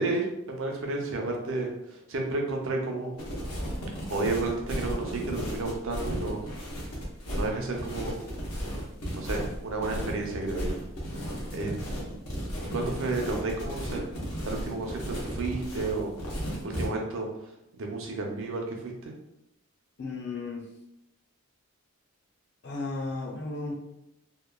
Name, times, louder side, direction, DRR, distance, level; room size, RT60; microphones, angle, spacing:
voice 1, 0.0-3.1 4.1-6.4 7.4-8.2 9.1-10.8 11.5-12.1 12.6-14.0 14.4-16.1 16.6-19.1, right 2 dB, 60° right, 1 dB, 0.5 m, -32 dB
sound 1, 3.2-16.9, equal, 85° left, 0.8 m, -35 dB
voice 2, 20.0-20.6 22.6-23.7, left 3 dB, 50° left, 0 dB, 0.5 m, -34 dB
2.9 x 2.1 x 2.2 m, 0.82 s
head